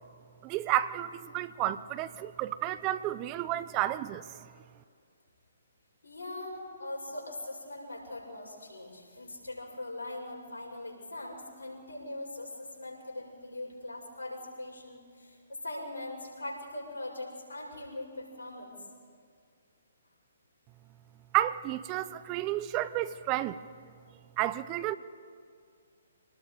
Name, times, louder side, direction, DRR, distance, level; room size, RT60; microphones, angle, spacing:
voice 1, 0.4-4.4 21.3-23.6 24.4-24.9, right 14 dB, 25° right, 15 dB, 0.6 m, -31 dB
voice 2, 6.0-18.7, left 2 dB, 80° left, -2 dB, 6.9 m, -41 dB
27.5 x 19.5 x 5.0 m, 2.2 s
figure-of-eight pair, 135°, 0 cm